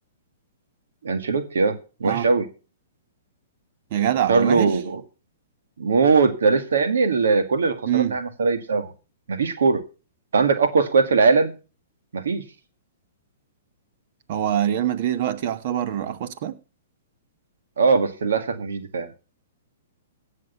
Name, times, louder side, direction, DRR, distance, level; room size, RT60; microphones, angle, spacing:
voice 1, 1.0-2.5 4.3-5.0 5.8-8.9 9.3-9.8 10.3-11.5 12.1-12.4 17.8-19.1, right 4 dB, 85° right, 1.9 m, -20 dB
voice 2, 3.9-4.7 7.9-8.1 14.3-16.6, right 11 dB, 50° right, 1.3 m, -24 dB
16.5 x 6.5 x 5.7 m
hypercardioid pair, 140°, 0 cm